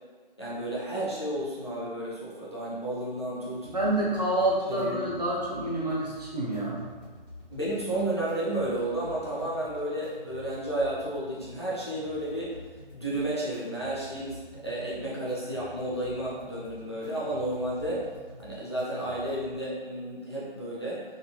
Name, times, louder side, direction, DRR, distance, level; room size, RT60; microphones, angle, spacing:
voice 1, 0.4-3.7 4.7-5.0 7.5-12.6 12.9-18.1 18.4-21.0, right 1 dB, 30° left, -7 dB, 0.4 m, -32 dB
sound 1, 3.5-19.5, left 1 dB, 15° right, 1.1 m, -49 dB
voice 2, 3.7-6.9, right 1 dB, 45° right, -4 dB, 0.7 m, -28 dB
3.6 x 2.5 x 2.3 m, 1.4 s
figure-of-eight pair, 165°, 29 cm